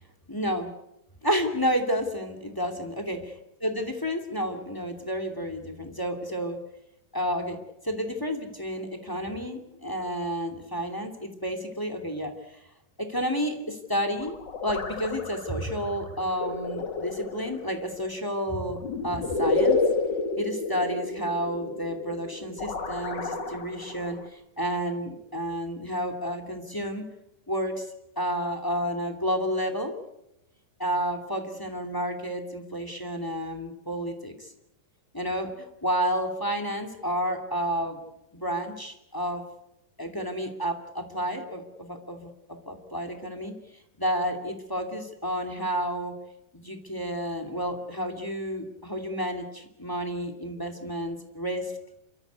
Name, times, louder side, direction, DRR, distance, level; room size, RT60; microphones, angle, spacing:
voice 1, 0.3-0.7 1.2-6.6 7.1-7.6 7.8-12.3 13.0-14.4 14.6-18.8 19.0-19.8 20.4-27.0 27.5-27.9 28.2-29.9 30.8-34.5 35.1-38.0 38.3-39.4 40.0-43.5 44.0-46.1 46.5-51.7, equal, 5° left, 6 dB, 2.0 m, -30 dB
sound 1, 14.2-24.3, left 3 dB, 40° left, 1.9 m, -30 dB
28.5 x 14.0 x 9.5 m, 0.86 s
omnidirectional pair, 3.8 m